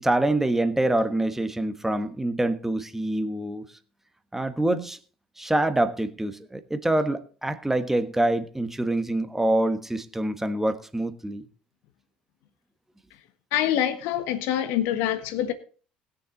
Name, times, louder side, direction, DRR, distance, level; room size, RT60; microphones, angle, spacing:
voice 1, 0.0-3.6 4.3-5.0 5.4-11.4, right 1 dB, 5° right, 1.3 m, -25 dB
voice 2, 13.5-15.5, left 11 dB, 65° left, 1.4 m, -25 dB
20.0 x 6.9 x 4.0 m
figure-of-eight pair, 60°, 4 cm